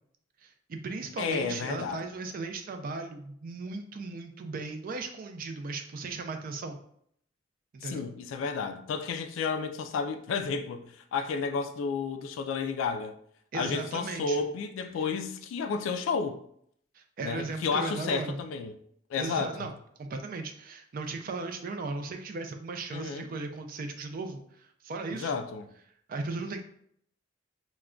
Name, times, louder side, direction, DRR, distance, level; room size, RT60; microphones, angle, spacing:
voice 1, 0.4-6.8 7.7-8.0 13.5-14.4 17.0-18.4 19.2-19.7 20.0-25.4 26.1-26.6, right 3 dB, 45° right, 0.4 m, -37 dB
voice 2, 1.2-2.0 7.8-13.2 13.5-16.4 17.2-18.8 19.1-19.7 22.9-23.3 25.1-25.7, left 5 dB, 80° left, 0.3 m, -32 dB
2.2 x 2.1 x 3.6 m
head